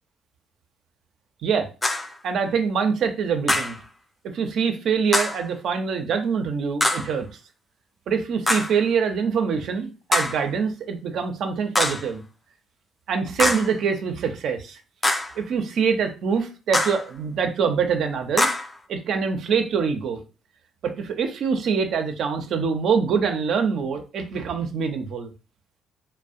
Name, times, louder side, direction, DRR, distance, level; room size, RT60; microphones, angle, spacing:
sound 1, 1.8-2.2 3.5-3.8 5.1-5.4 6.8-7.1 8.5-8.8 10.1-10.4 11.7-12.1 13.4-13.8 15.0-15.4 16.7-17.0 18.4-18.8, left 1 dB, 20° left, 0.4 m, -23 dB
voice 1, 2.2-3.8 4.3-7.3 8.1-12.2 13.1-14.8 15.4-18.5 18.9-20.2 20.8-25.3, right 6 dB, 70° right, 6 dB, 0.4 m, -24 dB
2.3 x 2.0 x 2.5 m, 0.33 s
supercardioid pair, 75°, 0 cm